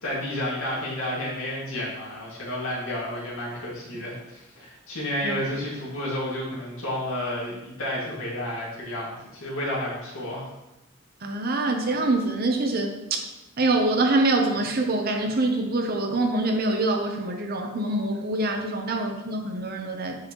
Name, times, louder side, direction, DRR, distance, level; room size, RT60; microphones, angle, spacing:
voice 1, 0.0-10.5, left 1 dB, 80° left, -5 dB, 2.2 m, -31 dB
voice 2, 11.2-13.2 13.6-20.2, right 2 dB, 45° right, 3 dB, 0.8 m, -25 dB
7.6 x 6.2 x 3.1 m, 0.94 s
head